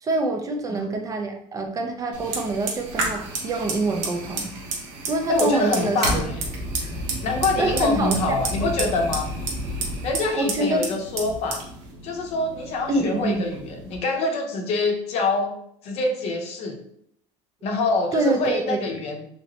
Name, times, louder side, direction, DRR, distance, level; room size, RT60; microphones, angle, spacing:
voice 1, 0.0-4.6 5.1-6.2 6.8-7.0 7.6-8.2 8.5-8.8 10.4-10.9 12.9-13.5 18.1-19.0, right 2 dB, 25° right, 3 dB, 0.4 m, -25 dB
Fire, 2.1-14.0, right 2 dB, 80° right, 0.9 m, -31 dB
voice 2, 5.3-6.3 7.2-9.3 10.0-11.6 12.0-15.5 15.8-16.8 17.6-19.2, left 3 dB, 50° left, 3 dB, 0.6 m, -25 dB
3.2 x 2.9 x 2.7 m, 0.68 s
cardioid pair, 150°, 14 cm